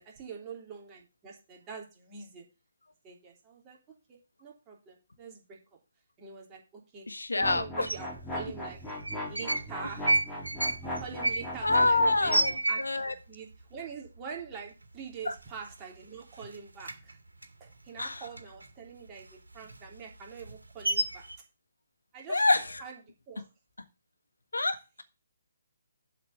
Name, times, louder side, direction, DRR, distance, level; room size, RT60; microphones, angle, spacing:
voice 1, 0.2-2.4 3.0-3.8 4.1-5.8 6.2-6.6 6.9-7.1 7.3-8.8 9.2-10.0 10.8-17.2 17.6-21.2 22.1-22.4 22.8-23.0 23.3-23.5, right 6 dB, 20° right, -1 dB, 3.3 m, -45 dB
voice 2, 7.1-7.9 11.6-13.1 15.2-15.3 18.0-18.2 22.3-22.8 24.5-25.0, left 2 dB, 85° left, 9 dB, 1.6 m, -27 dB
sound 1, 7.4-12.5, left 1 dB, 5° left, 3.6 m, -38 dB
sound 2, 7.8-8.0 8.9-9.7 10.0-13.2 13.5-13.6 13.9-14.4 14.8-14.9 15.3-16.0 16.3-18.7 19.1-21.3, right 2 dB, 85° right, 1.9 m, -31 dB
8.0 x 6.0 x 6.9 m, 0.29 s
figure-of-eight pair, 140°, 0 cm